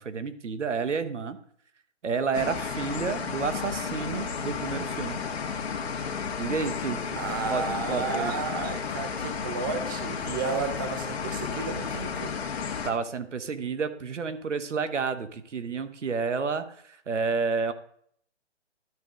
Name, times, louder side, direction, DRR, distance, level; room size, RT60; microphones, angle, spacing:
voice 1, 0.0-1.4 2.0-5.2 6.4-8.3 12.8-17.7, right 5 dB, 80° right, 10 dB, 1.2 m, -30 dB
sound 1, 2.3-12.9, left 6 dB, 60° left, 1.6 m, -33 dB
voice 2, 7.1-12.3, right 5 dB, 20° right, 7 dB, 0.7 m, -32 dB
12.5 x 5.1 x 3.7 m, 0.63 s
hypercardioid pair, 155°, 36 cm